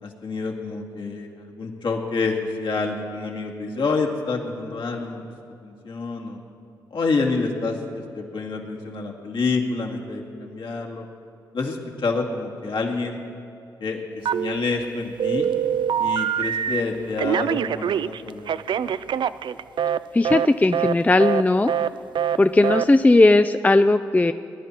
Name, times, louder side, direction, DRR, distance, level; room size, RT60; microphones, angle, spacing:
voice 1, 0.0-5.2 5.6-6.4 6.9-11.1 11.5-13.2 13.8-15.5 16.0-19.0, left 4 dB, 60° left, 0 dB, 2.2 m, -28 dB
Telephone, 14.2-14.8 15.2-16.8 17.2-20.0 20.2-20.5 20.7-20.9 21.2-21.4 21.7-21.9 22.1-22.4 22.6-22.8, right 9 dB, 60° right, 0.4 m, -24 dB
voice 2, 20.1-21.7 22.4-24.3, left 2 dB, 15° left, 10 dB, 0.4 m, -17 dB
20.0 x 11.0 x 4.4 m, 2.6 s
supercardioid pair, 45°, 9 cm